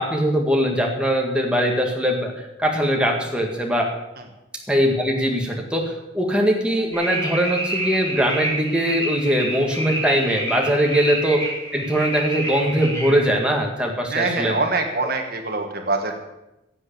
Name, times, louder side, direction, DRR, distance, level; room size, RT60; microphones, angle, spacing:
voice 1, 0.0-3.9 4.7-11.4 11.7-14.5, equal, 5° right, 0 dB, 1.8 m, -21 dB
sound 1, 6.9-13.2, right 1 dB, 15° left, 4.7 m, -28 dB
voice 2, 14.1-16.1, right 3 dB, 55° right, 4 dB, 1.5 m, -24 dB
16.5 x 7.9 x 6.8 m, 0.93 s
head